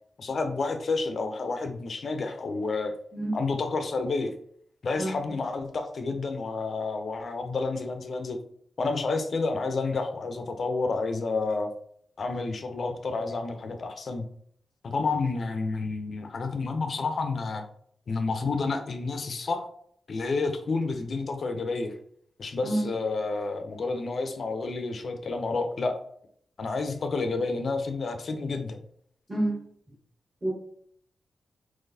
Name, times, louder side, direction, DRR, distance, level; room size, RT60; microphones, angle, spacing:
voice 1, 0.2-2.9 3.3-4.3 4.8-8.4 8.8-11.7 12.2-14.2 14.8-17.7 18.1-19.7 20.1-21.9 22.4-26.0 26.6-28.8, left 3 dB, 55° left, 6 dB, 0.5 m, -30 dB
voice 2, 29.3-29.6 30.4-30.5, right 1 dB, 20° right, -3 dB, 1.3 m, -28 dB
3.9 x 3.0 x 2.6 m, 0.65 s
cardioid pair, 85°, 0 cm